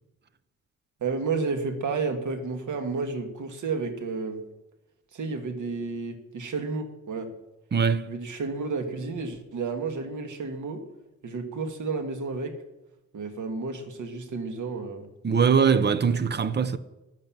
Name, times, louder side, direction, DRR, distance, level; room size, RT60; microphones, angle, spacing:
voice 1, 1.0-4.4 5.1-7.3 8.1-10.8 11.2-12.6 13.1-15.1, right 4 dB, 90° right, 1.9 m, -31 dB
voice 2, 7.7-8.1 15.2-16.8, right 6 dB, 35° right, 0.8 m, -22 dB
13.5 x 11.0 x 7.4 m
wide cardioid pair, 160°, 30 cm